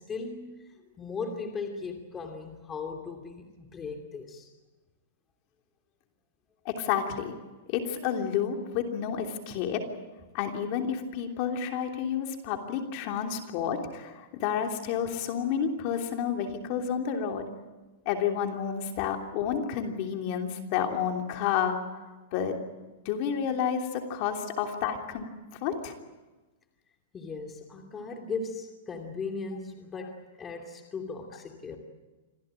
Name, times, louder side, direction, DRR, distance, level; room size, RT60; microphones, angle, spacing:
voice 1, 0.0-4.5 27.1-31.8, left 4 dB, 15° left, 4 dB, 2.7 m, -38 dB
voice 2, 6.6-7.4 7.7-9.8 10.3-17.5 18.0-21.8 22.3-22.6 23.0-25.3 25.6-25.9, left 8 dB, 45° left, 3 dB, 3.0 m, -30 dB
26.5 x 16.5 x 9.0 m, 1.2 s
hypercardioid pair, 150°, 0 cm